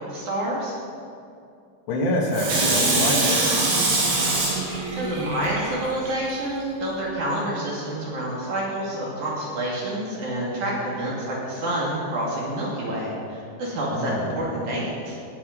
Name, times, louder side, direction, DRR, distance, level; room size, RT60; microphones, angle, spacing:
voice 1, 0.1-0.7 5.0-15.2, right 1 dB, 50° right, -5 dB, 3.8 m, -28 dB
voice 2, 1.9-3.5 13.9-14.4, left 1 dB, 75° left, -1 dB, 3.8 m, -26 dB
Water tap faucet / Sink (filling or washing), 2.3-6.1 6.6-6.7, right 2 dB, 65° right, 4.3 m, -23 dB
18.0 x 8.2 x 5.4 m, 2.5 s
omnidirectional pair, 4.9 m